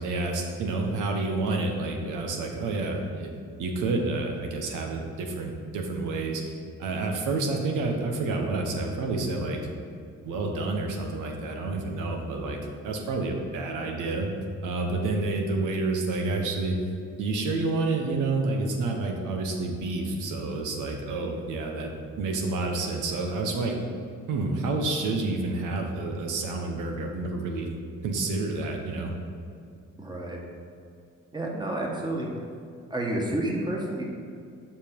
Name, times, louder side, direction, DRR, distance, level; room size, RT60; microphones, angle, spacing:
voice 1, 0.0-3.3 3.6-6.4 6.8-9.6 10.2-12.6 12.8-14.3 14.6-16.8 17.2-21.9 22.2-23.7 24.3-27.7 28.0-29.1, right 3 dB, 90° right, 2 dB, 1.2 m, -29 dB
voice 2, 30.0-30.4 31.3-32.3 32.9-34.0, right 1 dB, 15° right, -1 dB, 1.5 m, -30 dB
7.4 x 5.3 x 5.4 m, 2.4 s
cardioid pair, 90°, 30 cm